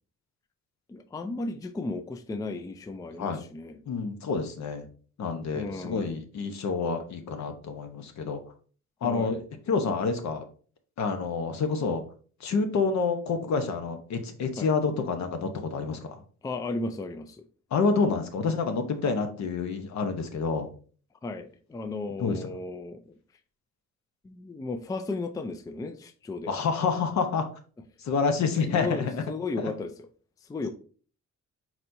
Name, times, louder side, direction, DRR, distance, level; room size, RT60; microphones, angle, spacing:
voice 1, 0.9-3.8 5.5-6.2 9.0-9.4 14.6-14.7 16.4-17.4 21.2-23.2 24.2-26.5 28.7-29.9 30.4-30.7, left 3 dB, 10° left, 8 dB, 0.4 m, -35 dB
voice 2, 3.9-4.9 5.2-8.4 9.0-9.4 9.7-10.4 11.0-12.0 12.4-16.2 17.7-20.7 22.2-22.5 26.5-27.5 28.0-29.2 29.6-29.7, left 4 dB, 65° left, 7 dB, 1.0 m, -28 dB
4.4 x 4.1 x 2.6 m, 0.41 s
cardioid pair, 90°, 30 cm